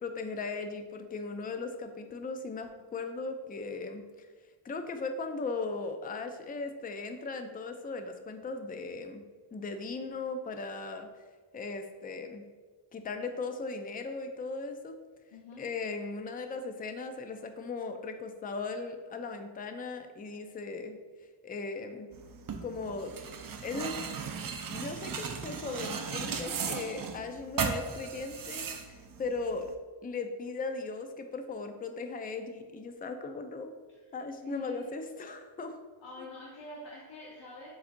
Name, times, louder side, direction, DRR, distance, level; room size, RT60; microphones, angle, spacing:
voice 1, 0.0-4.3 4.6-9.2 9.5-11.1 11.5-12.4 12.9-15.0 15.6-21.0 21.4-22.1 22.6-23.1 23.6-24.0 24.7-29.7 30.0-33.7 34.1-35.8 36.2-36.3, left 3 dB, 20° left, 7 dB, 0.3 m, -38 dB
voice 2, 15.3-15.6 33.9-34.0 34.4-34.8 36.0-37.7, left 2 dB, 60° left, -4 dB, 0.9 m, -45 dB
sound 1, 22.1-29.7, right 6 dB, 45° right, 0.5 m, -37 dB
7.0 x 2.6 x 2.5 m, 1.4 s
wide cardioid pair, 60°, 49 cm